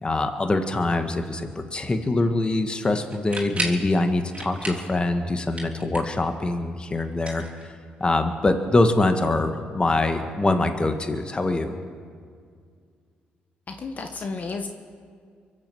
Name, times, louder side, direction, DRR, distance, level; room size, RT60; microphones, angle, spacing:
voice 1, 0.0-7.4 8.0-11.7, left 2 dB, 25° left, 7 dB, 1.5 m, -24 dB
sound 1, 3.1-3.9 4.3-4.9 5.2-6.2 7.1-8.1, right 2 dB, 30° right, 3.4 m, -33 dB
voice 2, 13.7-14.7, left 4 dB, 45° left, 5 dB, 1.3 m, -32 dB
23.5 x 7.9 x 7.7 m, 2.1 s
supercardioid pair, 70°, 4 cm